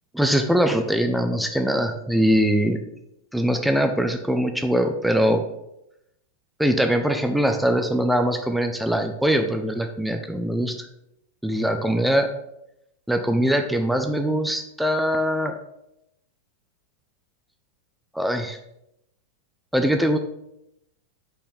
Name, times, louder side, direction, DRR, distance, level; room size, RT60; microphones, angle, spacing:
voice 1, 0.1-2.8 3.3-5.4 6.6-10.9 11.4-12.3 13.1-15.5 18.1-18.6 19.7-20.2, equal, ahead, 5 dB, 0.5 m, -22 dB
5.3 x 4.4 x 5.2 m, 0.83 s
figure-of-eight pair, 90°, 0 cm